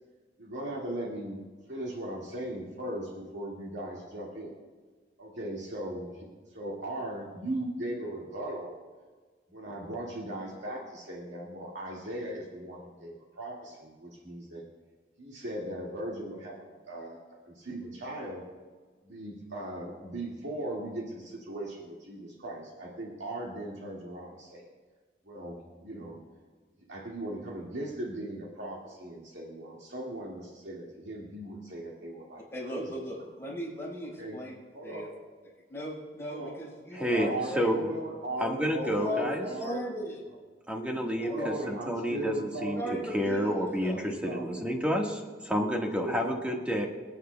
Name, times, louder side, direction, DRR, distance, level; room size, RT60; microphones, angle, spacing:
voice 1, 0.4-1.4 1.7-4.5 5.2-8.7 9.5-14.6 15.2-16.6 16.9-17.2 17.5-18.4 19.0-24.7 25.3-26.2 26.9-33.0 34.2-34.4 34.7-35.1 36.2-36.5 36.9-39.8 41.2-43.0 44.0-44.6 45.7-46.4, right 1 dB, 85° right, -4 dB, 2.1 m, -38 dB
voice 2, 32.5-34.5 34.8-35.1 35.7-37.8 38.9-40.2 40.9-41.7 42.7-44.1, equal, 15° left, -6 dB, 4.7 m, -37 dB
voice 3, 36.9-37.3 37.6-37.8 38.4-39.4 40.7-42.8 43.1-46.9, equal, 5° right, 0 dB, 1.5 m, -29 dB
28.0 x 9.4 x 2.3 m, 1.4 s
head